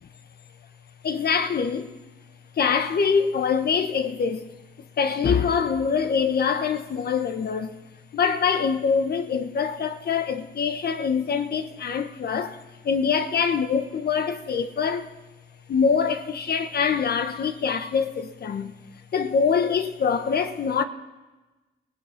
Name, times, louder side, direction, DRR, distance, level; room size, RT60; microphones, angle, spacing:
voice 1, 1.0-1.9 2.6-4.5 5.0-7.8 8.1-15.1 15.7-18.7 19.1-20.8, left 6 dB, 50° left, 1.2 m, -24 dB
29.0 x 17.5 x 5.9 m
cardioid pair, 90°, 20 cm